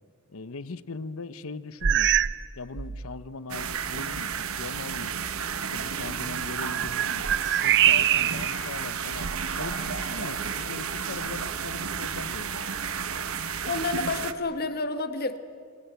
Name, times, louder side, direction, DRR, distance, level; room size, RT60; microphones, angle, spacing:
voice 1, 0.3-2.1 2.6-5.1 5.5-7.3 7.6-9.3 9.6-12.7, left 3 dB, 75° left, 16 dB, 0.9 m, -40 dB
sound 1, 1.8-2.5 2.8-3.1 3.8-3.9 6.3-8.6 9.1-10.2, right 11 dB, 60° right, 0.6 m, -25 dB
sound 2, 3.5-14.3, right 7 dB, 80° right, 1.2 m, -32 dB
Wind instrument woodwind instrument, 7.3-13.7, left 6 dB, 25° left, 1.5 m, -47 dB
voice 2, 13.6-15.4, left 3 dB, 45° left, 10 dB, 1.5 m, -29 dB
29.0 x 23.0 x 8.2 m, 2.1 s
head